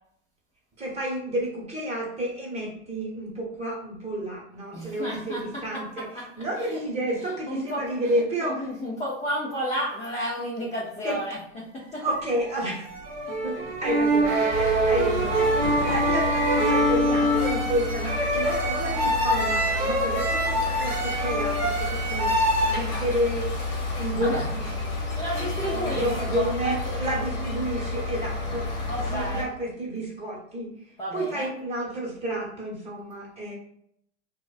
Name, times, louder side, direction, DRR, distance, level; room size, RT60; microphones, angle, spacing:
voice 1, 0.8-8.7 11.0-11.2 12.0-12.8 13.4-23.5 24.0-24.9 25.7-33.5, right 1 dB, 20° right, -4 dB, 1.0 m, -30 dB
voice 2, 4.7-6.9 7.2-8.1 8.4-12.1 13.5-13.6 24.2-24.7 25.2-26.1 26.4-27.0 28.9-29.5 31.0-31.5, equal, 20° left, -6 dB, 0.5 m, -32 dB
sound 1, 12.2-22.8, right 1 dB, 45° right, 0.7 m, -24 dB
sound 2, 14.5-29.4, left 2 dB, 60° left, 0.9 m, -31 dB
2.4 x 2.2 x 2.4 m, 0.69 s
hypercardioid pair, 100°, 34 cm